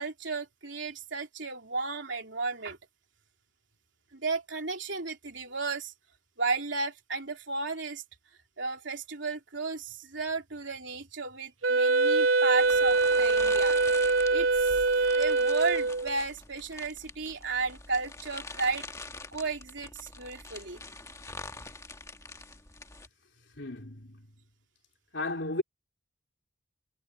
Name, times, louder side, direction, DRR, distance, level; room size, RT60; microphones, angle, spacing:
voice 1, 0.0-2.8 4.1-5.9 6.4-8.0 8.6-13.8 14.3-14.8 15.1-18.9 19.3-20.8, right 4 dB, 65° right, 3.4 m, -33 dB
Wind instrument woodwind instrument, 11.6-16.2, right 3 dB, 90° right, 1.2 m, -24 dB
sound 1, 12.6-23.1, left 3 dB, 15° left, 1.8 m, -45 dB
voice 2, 23.6-24.3 25.1-25.6, left 2 dB, 65° left, 3.5 m, -34 dB
head